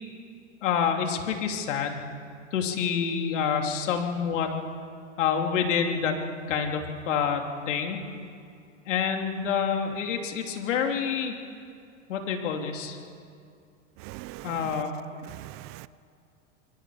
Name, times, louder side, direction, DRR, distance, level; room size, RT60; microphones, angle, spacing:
voice 1, 0.6-2.1 2.5-4.5 5.2-8.0 8.9-11.3 12.1-13.0 14.4-14.9, left 7 dB, 75° left, 3 dB, 3.1 m, -27 dB
voice 2, 14.0-14.8 15.3-15.9, right 20 dB, 40° right, 18 dB, 0.5 m, -41 dB
26.0 x 23.0 x 5.0 m, 2.3 s
hypercardioid pair, 110°, 37 cm